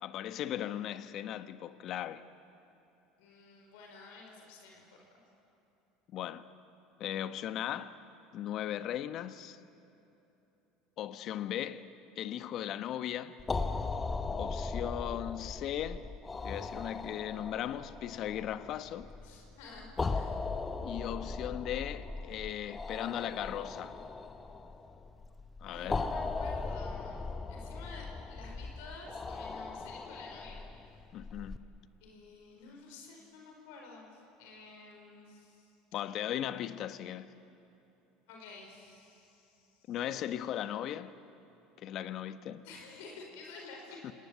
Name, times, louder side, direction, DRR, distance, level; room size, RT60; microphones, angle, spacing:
voice 1, 0.0-2.2 6.1-6.4 7.0-8.0 8.3-9.6 11.0-11.8 12.2-13.4 14.4-16.1 16.4-19.1 20.8-23.9 25.6-26.1 31.1-31.6 35.9-37.3 39.9-41.1 41.8-42.7 44.0-44.1, left 11 dB, 55° left, 1.0 m, -37 dB
voice 2, 3.2-5.2 19.2-20.5 25.6-30.6 32.0-35.7 38.3-39.9 42.6-44.1, left 3 dB, 80° left, 4.7 m, -51 dB
sound 1, 13.4-31.6, left 3 dB, 20° left, 1.1 m, -38 dB
28.0 x 18.5 x 8.3 m
supercardioid pair, 105°, 0 cm